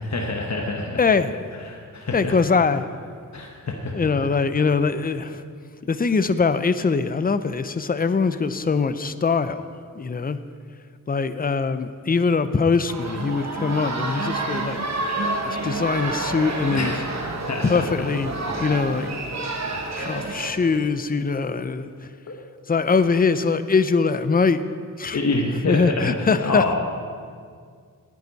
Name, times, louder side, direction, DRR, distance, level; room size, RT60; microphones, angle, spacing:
voice 1, 0.0-1.0 1.6-2.3 3.3-3.9 16.7-17.2 17.5-17.9 19.7-20.1 22.3-22.4 25.1-26.1 26.4-26.7, left 2 dB, 50° left, 0 dB, 1.2 m, -26 dB
voice 2, 1.0-1.4 2.1-2.9 3.9-5.4 5.9-9.6 9.9-10.4 11.1-14.8 15.4-16.9 17.6-19.1 20.0-22.1 22.7-24.6 25.0-25.2 25.7-26.7, left 4 dB, 25° left, 12 dB, 0.5 m, -22 dB
festa major, 12.9-20.5, right 2 dB, 50° right, 1.3 m, -29 dB
18.5 x 9.6 x 4.1 m, 2.1 s
wide cardioid pair, 100°, 34 cm